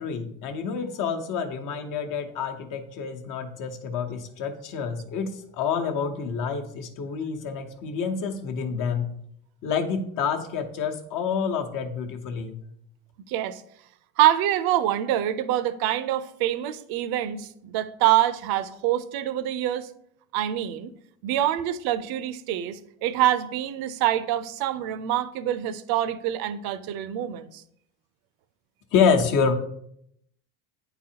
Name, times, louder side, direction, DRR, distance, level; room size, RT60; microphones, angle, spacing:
voice 1, 0.0-9.1 9.6-12.6 28.9-29.5, left 6 dB, 55° left, 5 dB, 1.0 m, -27 dB
voice 2, 13.3-13.6 14.2-19.9 20.3-20.9 21.2-27.6, right 12 dB, 65° right, 14 dB, 0.6 m, -25 dB
9.1 x 4.0 x 2.8 m, 0.71 s
supercardioid pair, 115°, 40 cm